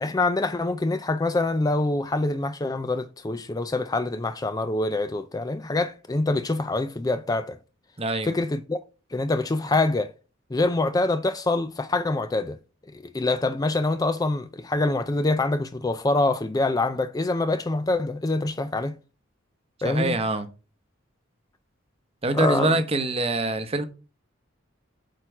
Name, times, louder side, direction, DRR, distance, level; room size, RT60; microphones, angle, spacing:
voice 1, 0.0-7.6 8.2-8.8 9.1-10.1 10.5-12.6 12.9-19.0 19.8-20.2 22.3-22.8, left 2 dB, 20° left, 0.4 m, -25 dB
voice 2, 8.0-8.4 19.8-20.5 22.2-23.8, right 2 dB, 30° right, 0.9 m, -24 dB
7.8 x 4.5 x 4.7 m
head